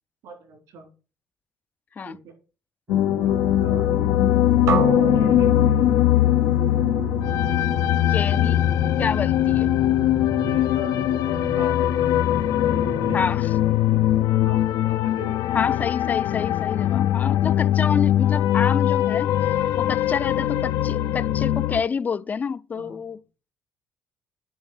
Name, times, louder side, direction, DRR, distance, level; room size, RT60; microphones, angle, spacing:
voice 1, 0.2-0.9 2.0-2.4 3.2-4.1 5.1-5.6 8.5-8.6 10.4-11.2 11.5-11.9 12.7-13.3 14.4-15.4 22.7-23.0, right 4 dB, 80° right, 3.6 m, -42 dB
Distant zebra C, 2.9-21.8, left 13 dB, 80° left, 0.5 m, -21 dB
sound 1, 2.9-13.2, right 5 dB, 30° right, 0.6 m, -35 dB
sound 2, 4.7-8.6, right 6 dB, 65° right, 1.3 m, -30 dB
voice 2, 8.1-8.7 9.0-9.7 13.1-13.6 15.5-19.3 19.8-23.2, left 6 dB, 25° left, 0.3 m, -28 dB
8.5 x 3.3 x 6.3 m
cardioid pair, 130°, 6 cm